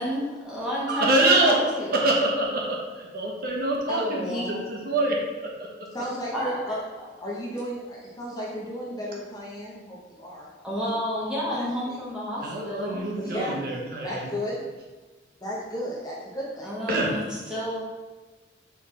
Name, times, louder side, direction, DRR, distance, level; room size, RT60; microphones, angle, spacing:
voice 1, 0.0-2.1 4.3-4.5 6.3-7.1 10.6-13.1 16.6-17.8, equal, 5° right, -8 dB, 1.9 m, -31 dB
voice 2, 0.9-1.6 1.9-5.1 12.4-14.3 16.9-17.1, right 2 dB, 55° right, -1 dB, 1.0 m, -25 dB
voice 3, 3.9-4.6 5.9-6.8 7.2-10.5 11.4-12.0 13.2-14.7 15.4-16.7, equal, 20° left, -5 dB, 1.0 m, -33 dB
5.7 x 4.2 x 4.2 m, 1.3 s
head